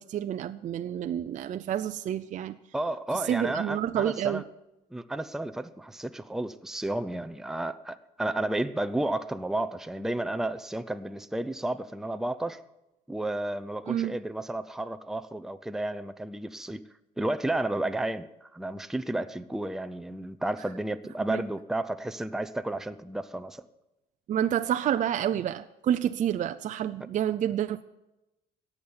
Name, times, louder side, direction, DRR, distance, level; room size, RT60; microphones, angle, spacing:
voice 1, 0.0-2.6 3.3-4.4 13.9-14.2 21.3-21.4 24.3-27.8, right 10 dB, 45° right, 0.5 m, -29 dB
voice 2, 2.7-4.4 4.9-12.6 13.1-16.8 17.2-23.6, right 1 dB, ahead, 0.6 m, -32 dB
17.0 x 7.2 x 9.7 m
cardioid pair, 110°, 17 cm